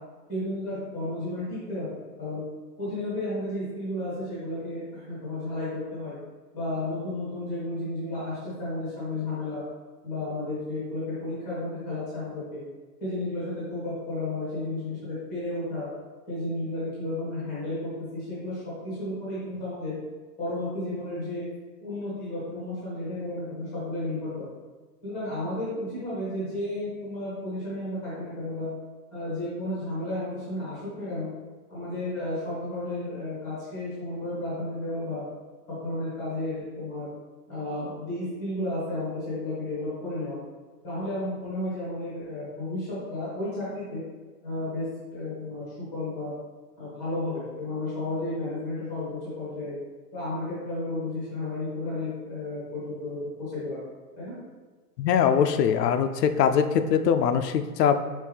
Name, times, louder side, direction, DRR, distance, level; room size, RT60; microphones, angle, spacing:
voice 1, 0.3-1.9 2.2-2.4 2.8-6.1 6.5-9.6 10.0-12.6 13.0-15.9 16.3-19.9 20.4-21.4 21.8-24.3 25.0-28.7 29.1-31.3 31.7-35.2 35.7-37.1 37.5-40.4 40.8-44.0 44.4-45.7 45.9-46.3 46.8-49.7 50.1-53.8 54.2-54.3, left 1 dB, 5° left, -10 dB, 0.5 m, -32 dB
voice 2, 55.0-58.0, left 7 dB, 80° left, 9 dB, 0.5 m, -22 dB
5.2 x 3.1 x 3.3 m, 1.3 s
hypercardioid pair, 175°, 48 cm